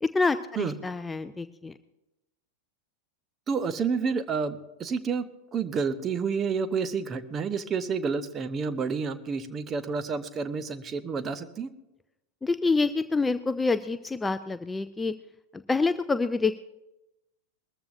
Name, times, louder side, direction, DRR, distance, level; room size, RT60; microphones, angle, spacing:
voice 1, 0.0-1.7 12.4-15.1 15.5-16.6, left 3 dB, 10° left, 12 dB, 0.4 m, -27 dB
voice 2, 3.5-5.2 5.5-11.7, right 5 dB, 25° right, 11 dB, 0.9 m, -29 dB
21.0 x 14.0 x 2.6 m, 0.94 s
figure-of-eight pair, 90°, 0 cm